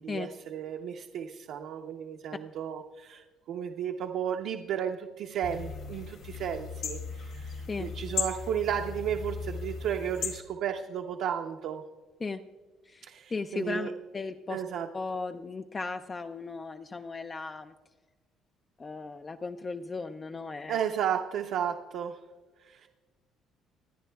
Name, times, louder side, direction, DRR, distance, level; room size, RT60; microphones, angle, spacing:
voice 1, 0.0-11.8 13.0-13.9 14.5-14.9 20.7-22.2 22.6-22.9, right 9 dB, 65° right, 2 dB, 0.7 m, -33 dB
sound 1, 5.4-10.4, left 6 dB, 55° left, 1.7 m, -37 dB
voice 2, 12.9-14.6 14.9-17.7 18.8-20.8, left 4 dB, 20° left, 8 dB, 0.3 m, -36 dB
26.5 x 10.0 x 2.3 m, 1.4 s
cardioid pair, 165°, 0 cm